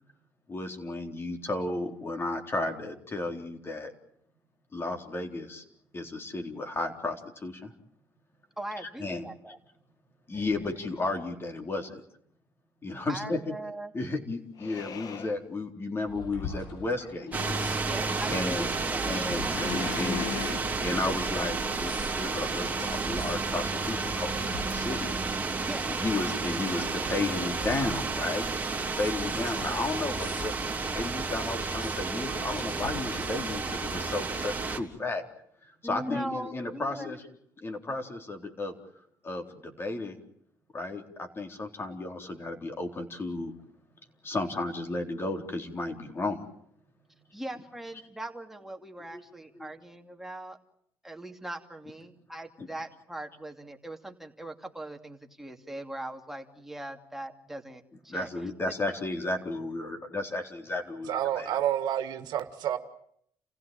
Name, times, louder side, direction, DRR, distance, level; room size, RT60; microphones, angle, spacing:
voice 1, 0.5-3.9 4.7-5.6 5.9-7.7 8.8-9.2 10.3-12.0 12.8-13.5 13.9-17.3 18.3-18.7 19.0-25.1 26.0-28.5 28.8-35.2 35.6-37.3 37.6-38.7 39.2-40.2 40.7-43.5 44.2-46.5 49.1-49.2 49.6-49.7 52.6-52.7 58.1-61.5, left 2 dB, 30° left, 4 dB, 4.0 m, -33 dB
voice 2, 8.6-9.6 13.1-13.9 17.8-19.1 25.6-25.9 35.8-37.1 47.3-50.6 51.0-58.7, right 1 dB, 5° right, 3 dB, 2.7 m, -41 dB
sound 1, 10.3-11.2 14.6-15.4 16.0-16.5 17.1-17.8 19.4-20.5, left 7 dB, 60° left, 1.8 m, -39 dB
sound 2, 16.3-34.5, left 4 dB, 80° left, 6.5 m, -46 dB
sound 3, 17.3-34.8, right 4 dB, 20° right, 3.5 m, -31 dB
voice 3, 61.1-62.8, right 11 dB, 70° right, 9 dB, 1.7 m, -29 dB
29.0 x 16.0 x 9.0 m, 0.71 s
cardioid pair, 85°, 7 cm